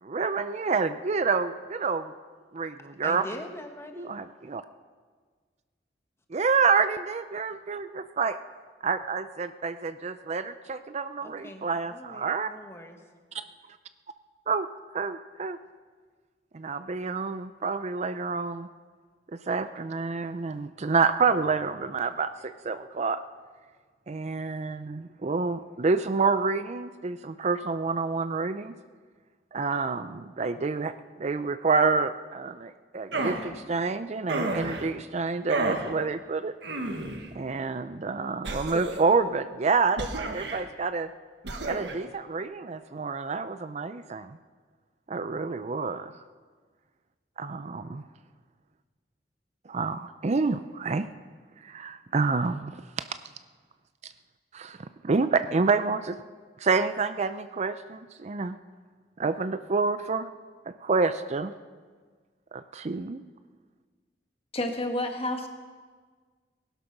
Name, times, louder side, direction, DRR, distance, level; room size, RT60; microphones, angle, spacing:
voice 1, 0.0-2.1 2.5-3.2 4.0-4.6 6.3-8.4 8.8-12.5 13.3-13.4 14.5-14.7 14.9-15.6 16.5-18.7 19.5-23.2 24.1-28.7 29.5-36.5 37.3-41.1 41.6-44.4 45.1-46.1 47.4-48.0 49.7-51.1 51.6-53.1 54.0-54.1 54.5-56.2 56.6-58.6 59.2-60.3 60.8-61.5 62.5-63.2, right 4 dB, 40° right, 12 dB, 0.5 m, -28 dB
voice 2, 3.0-4.1 11.2-13.0, left 1 dB, 15° left, 4 dB, 1.4 m, -42 dB
sound 1, 33.1-33.5 34.3-34.9 35.5-35.9 36.6-37.3 38.4-39.1 40.0-40.6 41.4-41.9, right 2 dB, 80° right, 1.5 m, -31 dB
voice 3, 64.5-65.5, left 1 dB, 35° left, 4 dB, 1.5 m, -29 dB
19.0 x 11.5 x 5.9 m, 1.5 s
head